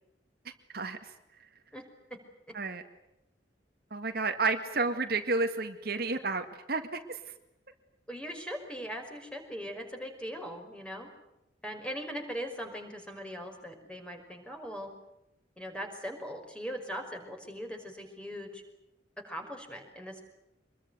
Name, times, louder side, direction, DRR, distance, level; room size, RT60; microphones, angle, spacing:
voice 1, 3.9-7.2, right 3 dB, 60° right, 6 dB, 2.0 m, -31 dB
voice 2, 8.1-11.1 11.6-14.9 15.6-18.6 19.2-20.2, equal, 5° left, 4 dB, 5.4 m, -40 dB
26.0 x 22.0 x 9.5 m, 0.84 s
head